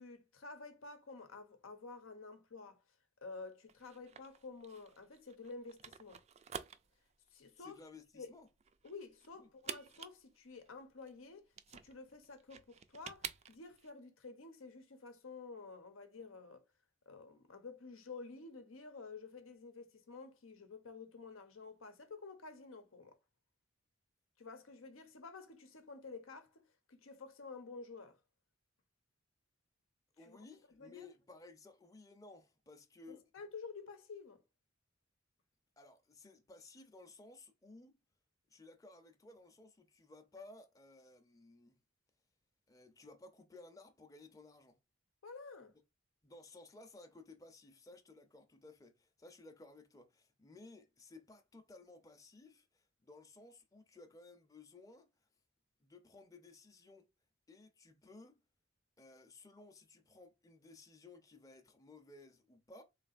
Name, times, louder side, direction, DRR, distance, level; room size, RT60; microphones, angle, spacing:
voice 1, 0.0-2.8 3.2-6.2 7.3-7.8 8.1-8.3 8.8-16.6 17.1-23.2 24.4-26.6 26.9-28.2 30.3-30.4 30.7-31.1 33.1-34.4 45.2-45.7, left 4 dB, 90° left, 0.8 m, -51 dB
sound 1, 3.7-13.9, right 7 dB, 35° right, 0.3 m, -50 dB
voice 2, 7.6-8.5 9.4-9.5 30.2-33.3 35.8-38.0 38.5-41.8 42.7-44.8 46.2-55.1 55.8-57.1 57.5-58.4 59.0-62.8, left 3 dB, 15° left, 0.6 m, -57 dB
3.8 x 3.2 x 2.5 m
head